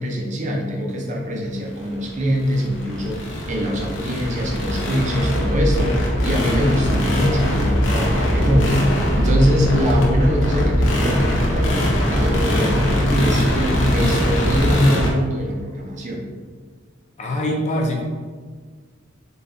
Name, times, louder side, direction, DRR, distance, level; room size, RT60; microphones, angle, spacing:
voice 1, 0.0-8.9 9.1-16.2, equal, 40° right, 0 dB, 0.6 m, -23 dB
sound 1, 1.8-15.1, equal, 70° left, 0.8 m, -21 dB
voice 2, 17.2-18.0, left 1 dB, 35° left, -1 dB, 0.6 m, -23 dB
4.0 x 2.4 x 3.8 m, 1.5 s
head